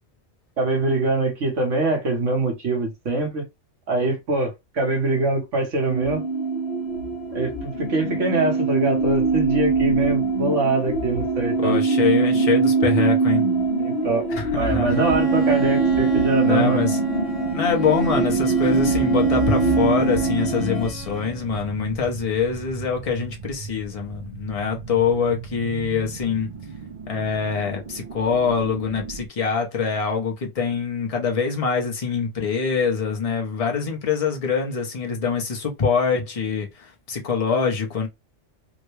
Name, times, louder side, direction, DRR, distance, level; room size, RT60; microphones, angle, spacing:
voice 1, 0.6-3.4 3.9-6.2 7.3-11.8 13.8-14.2 14.5-16.9, right 2 dB, 85° right, 1.6 m, -23 dB
sound 1, 5.9-20.9, right 4 dB, 60° left, 1.0 m, -22 dB
voice 2, 11.6-13.5 14.3-15.0 16.4-17.0 17.5-26.5 27.1-38.1, left 5 dB, 35° left, 0.8 m, -24 dB
Bowed string instrument, 14.9-21.6, left 5 dB, 85° left, 1.2 m, -35 dB
sound 2, 14.9-29.3, right 6 dB, 50° right, 0.6 m, -35 dB
3.6 x 2.2 x 3.1 m
omnidirectional pair, 1.2 m